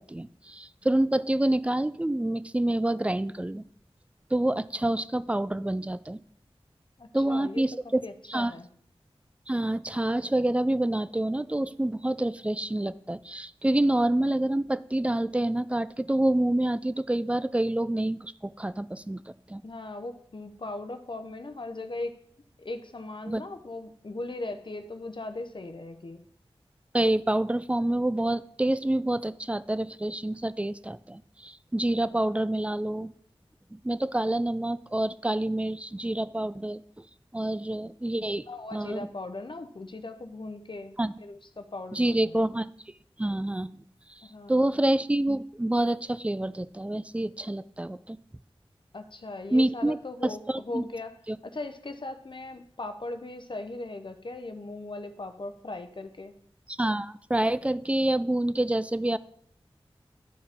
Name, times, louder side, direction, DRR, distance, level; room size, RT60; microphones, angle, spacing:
voice 1, 0.0-3.6 4.3-6.2 7.1-8.0 8.3-8.5 9.5-19.2 19.5-19.6 23.3-23.4 26.9-33.1 33.7-36.8 37.3-38.5 38.7-39.1 41.0-41.1 41.9-42.7 43.2-43.8 44.5-48.2 49.5-50.0 50.2-50.8 51.3-51.4 56.8-59.2, right 1 dB, 10° right, 15 dB, 0.3 m, -27 dB
voice 2, 7.0-7.6 8.0-8.7 19.6-22.2 22.6-26.2 38.2-42.4 44.2-44.8 48.9-51.1 51.4-56.3, left 2 dB, 50° left, 8 dB, 0.7 m, -39 dB
10.0 x 4.6 x 3.6 m, 0.65 s
wide cardioid pair, 45°, 10 cm